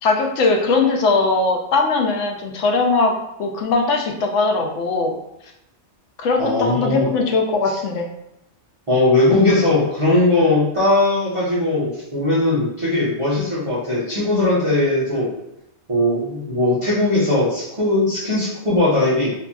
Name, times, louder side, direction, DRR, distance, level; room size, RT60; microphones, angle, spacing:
voice 1, 0.0-3.1 3.4-5.2 6.2-8.1, left 3 dB, 85° left, 2 dB, 0.9 m, -19 dB
voice 2, 6.4-7.1 7.6-7.8 8.9-15.3 15.9-19.3, left 2 dB, 30° right, -10 dB, 0.8 m, -19 dB
2.9 x 2.6 x 2.3 m, 0.84 s
omnidirectional pair, 1.2 m